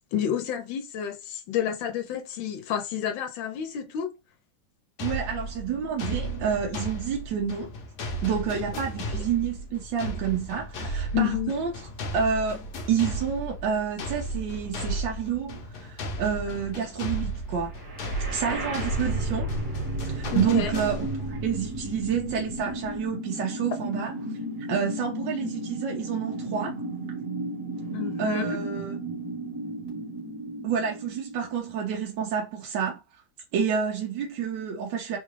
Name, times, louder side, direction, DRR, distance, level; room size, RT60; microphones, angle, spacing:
voice 1, 0.1-4.1 11.1-11.5 20.3-20.7 27.9-28.6, left 10 dB, 85° left, 1.4 m, -29 dB
sound 1, 5.0-21.4, right 1 dB, 65° left, 1.2 m, -35 dB
voice 2, 5.0-7.7 8.2-11.7 12.1-12.6 12.9-17.7 18.3-19.5 20.0-24.1 24.7-26.7 28.2-28.9 30.6-33.0 33.5-35.2, right 7 dB, 80° right, 1.3 m, -29 dB
sound 2, 17.8-31.8, right 1 dB, 50° right, 1.7 m, -33 dB
3.6 x 2.3 x 3.1 m
omnidirectional pair, 2.0 m